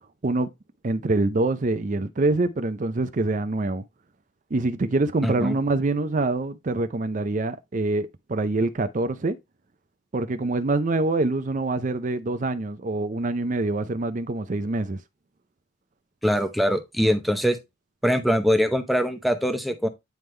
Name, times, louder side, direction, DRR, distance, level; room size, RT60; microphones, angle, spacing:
voice 1, 0.8-3.8 4.5-9.4 10.1-15.0, right 2 dB, 40° right, 0.5 m, -25 dB
voice 2, 5.2-5.6 16.2-17.6 18.0-19.9, equal, ahead, 0.7 m, -22 dB
9.2 x 3.6 x 3.2 m
head